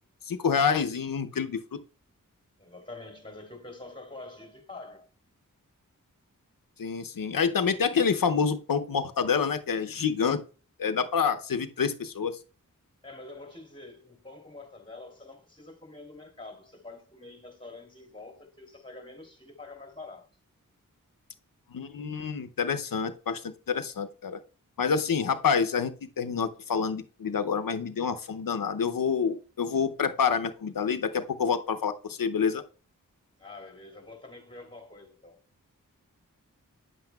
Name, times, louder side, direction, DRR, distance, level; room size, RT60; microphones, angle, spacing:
voice 1, 0.3-1.8 6.8-10.4 10.8-12.4 21.7-24.4 24.8-32.6, left 6 dB, 80° left, 0.7 m, -27 dB
voice 2, 2.6-5.1 13.0-20.3 33.4-35.4, left 2 dB, 15° left, 3.0 m, -46 dB
9.5 x 7.8 x 2.3 m
cardioid pair, 45°, 33 cm